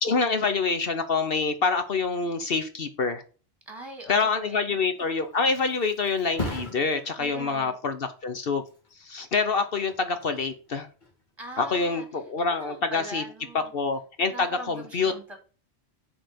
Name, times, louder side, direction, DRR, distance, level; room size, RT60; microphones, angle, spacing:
voice 1, 0.0-3.2 4.1-8.6 9.0-10.9 11.6-13.2 13.7-15.1, left 4 dB, 60° left, 8 dB, 1.1 m, -26 dB
voice 2, 3.7-4.8 7.2-7.7 11.4-12.1 12.5-13.7 14.3-15.4, right 1 dB, 25° right, 3 dB, 2.8 m, -41 dB
Thump thud, 4.9-12.3 12.7-13.1, left 2 dB, 45° left, 2.3 m, -41 dB
7.7 x 4.2 x 6.8 m, 0.36 s
omnidirectional pair, 1.1 m